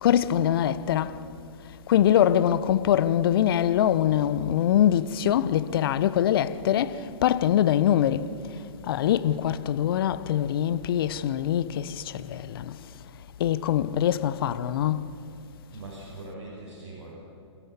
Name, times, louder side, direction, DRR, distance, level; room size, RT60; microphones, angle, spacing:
voice 1, 0.0-1.1 1.9-6.9 7.2-8.2 8.9-11.8 12.3-12.6 13.4-15.0, left 10 dB, 50° left, 1.0 m, -23 dB
voice 2, 15.7-17.2, right 2 dB, 50° right, 7.2 m, -41 dB
28.5 x 14.0 x 8.4 m
figure-of-eight pair, 120°, 15 cm